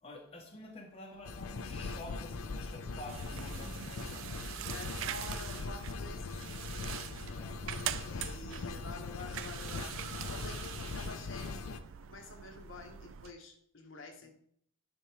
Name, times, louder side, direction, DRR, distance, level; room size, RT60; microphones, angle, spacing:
voice 1, 0.0-4.3 7.2-7.5 14.2-14.3, left 1 dB, 30° left, 0 dB, 1.0 m, -49 dB
sound 1, 1.1-8.2, right 1 dB, 25° right, 0.8 m, -54 dB
sound 2, 1.2-11.8, left 4 dB, 85° left, 0.5 m, -41 dB
sound 3, 3.1-13.3, right 10 dB, 65° right, 0.3 m, -43 dB
voice 2, 4.7-6.3 7.9-10.0 10.3-14.3, left 3 dB, 65° left, 3 dB, 1.0 m, -49 dB
10.0 x 4.4 x 3.2 m, 0.68 s
head